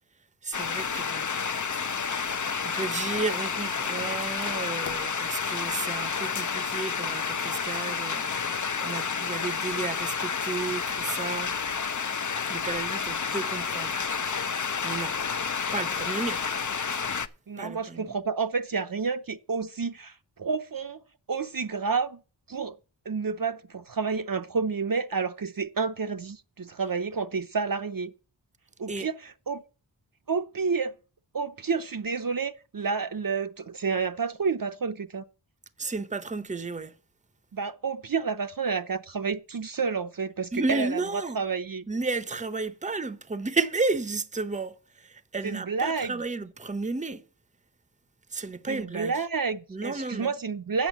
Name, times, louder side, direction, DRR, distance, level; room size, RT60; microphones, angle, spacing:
voice 1, 0.4-1.3 1.8-11.6 12.5-14.0 14.8-15.2 15.7-16.5 17.6-18.1 28.9-29.1 35.8-36.9 40.5-41.4 41.9-47.3 48.3-49.3 49.7-50.3, right 3 dB, 15° right, 0.8 m, -33 dB
sound 1, 0.5-17.3, left 6 dB, 40° left, 0.7 m, -30 dB
voice 2, 17.5-21.0 21.3-22.2 22.5-22.8 23.1-28.1 28.8-29.6 30.3-30.9 31.3-35.2 37.5-41.9 45.4-46.1 48.7-50.9, right 5 dB, 50° right, 0.7 m, -30 dB
8.2 x 6.3 x 7.2 m
wide cardioid pair, 50°, 45 cm